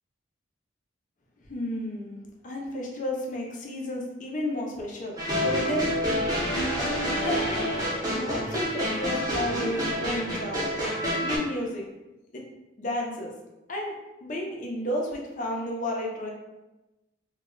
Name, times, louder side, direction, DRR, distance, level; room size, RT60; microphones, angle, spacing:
voice 1, 1.5-2.2 2.4-5.9 7.2-7.8 8.1-10.6 11.2-11.8 12.3-12.4 12.8-13.3 13.7-13.9 14.2-16.3, left 1 dB, 40° left, 0 dB, 0.5 m, -32 dB
sound 1, 5.2-11.4, equal, 20° right, 0.6 m, -28 dB
2.2 x 2.0 x 3.7 m, 1.0 s
head